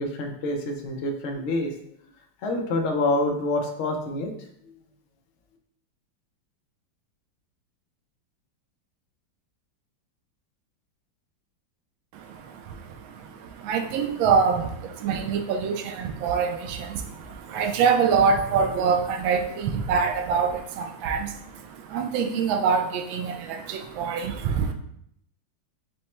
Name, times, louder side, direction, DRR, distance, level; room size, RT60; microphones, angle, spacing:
voice 1, 0.0-1.7 2.4-4.3, left 2 dB, 90° left, 2 dB, 0.6 m, -27 dB
voice 2, 12.1-24.7, right 6 dB, 90° right, 6 dB, 1.4 m, -25 dB
5.1 x 2.1 x 4.2 m, 0.72 s
omnidirectional pair, 2.1 m